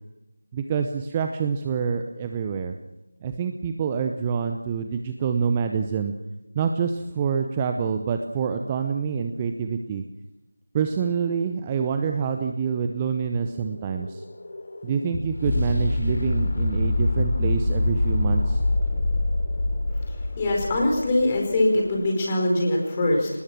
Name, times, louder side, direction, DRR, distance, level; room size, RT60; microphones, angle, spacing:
voice 1, 0.5-2.7 3.2-6.1 6.5-10.0 10.7-14.2 14.8-18.6, right 6 dB, 15° right, 6 dB, 0.8 m, -26 dB
sound 1, 13.2-21.3, left 2 dB, 45° left, 3.8 m, -25 dB
voice 2, 20.4-23.3, left 1 dB, 20° left, 0 dB, 4.8 m, -22 dB
24.5 x 20.0 x 6.2 m, 0.92 s
figure-of-eight pair, 165°, 0 cm